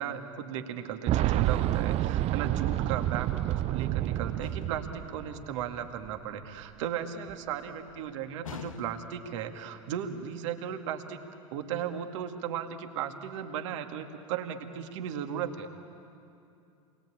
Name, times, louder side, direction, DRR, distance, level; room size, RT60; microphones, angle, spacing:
voice 1, 0.0-11.2 11.5-15.8, right 9 dB, 65° right, 5 dB, 2.2 m, -36 dB
Boom, 1.1-5.8 6.1-6.2 7.3-7.4, right 14 dB, 40° right, 0.6 m, -29 dB
sound 1, 4.4-5.0 8.4-9.3, left 6 dB, 85° left, 1.6 m, -44 dB
29.0 x 21.5 x 8.7 m, 2.7 s
hypercardioid pair, 90°, 17 cm